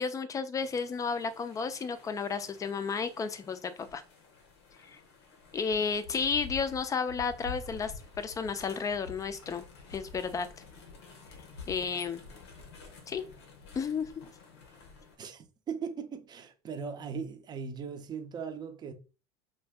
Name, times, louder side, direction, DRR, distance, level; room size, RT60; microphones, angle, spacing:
voice 1, 0.0-4.0 4.9-5.0 5.5-9.7 9.9-10.5 11.7-12.2 13.1-13.2 13.7-14.1, left 5 dB, 25° left, 0.4 m, -32 dB
sound 1, 0.5-15.2, left 4 dB, 85° left, 0.8 m, -49 dB
voice 2, 15.2-18.9, right 6 dB, 30° right, 0.6 m, -39 dB
2.6 x 2.2 x 3.4 m
supercardioid pair, 95°, 14 cm